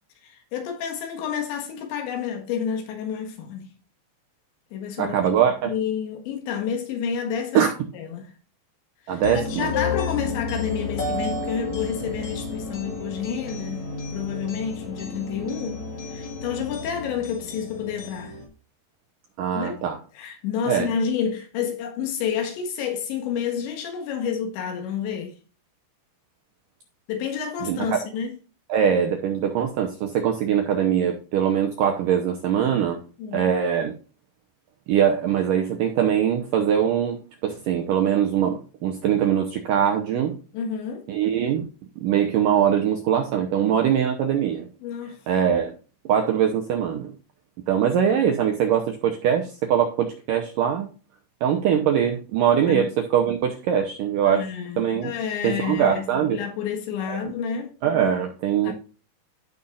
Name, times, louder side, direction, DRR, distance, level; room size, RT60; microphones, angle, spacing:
voice 1, 0.2-3.7 4.7-5.2 5.7-8.3 9.1-9.2 9.5-15.8 16.1-18.4 19.5-19.9 20.2-25.4 27.1-28.4 33.2-33.4 40.5-41.1 44.8-45.2 52.7-52.9 54.3-57.7 58.6-58.7, left 7 dB, 85° left, 3.9 m, -29 dB
voice 2, 5.0-5.7 7.5-7.7 9.1-9.7 19.4-20.0 20.7-20.9 27.6-28.0 28.7-33.0 33.3-33.9 34.9-40.3 41.1-41.7 42.0-44.7 45.3-45.7 46.1-47.1 47.7-50.9 51.4-54.4 54.8-55.1 55.4-56.4 57.1-57.2 57.8-58.7, right 8 dB, 80° right, 2.0 m, -22 dB
sound 1, 9.2-18.4, left 3 dB, 45° left, 1.2 m, -32 dB
15.0 x 5.6 x 2.5 m
omnidirectional pair, 5.1 m